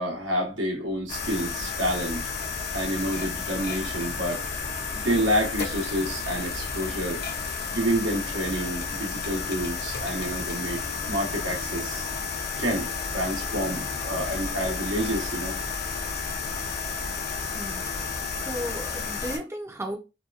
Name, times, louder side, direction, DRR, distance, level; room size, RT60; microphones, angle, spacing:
voice 1, 0.0-2.3 2.7-4.4 4.9-7.2 7.7-10.8 11.1-12.0 12.6-15.6, right 1 dB, 90° right, 0.9 m, -28 dB
sound 1, 1.1-19.4, left 5 dB, 55° left, 0.5 m, -32 dB
voice 2, 17.5-20.0, right 1 dB, 15° right, 0.5 m, -35 dB
2.7 x 2.3 x 2.4 m
head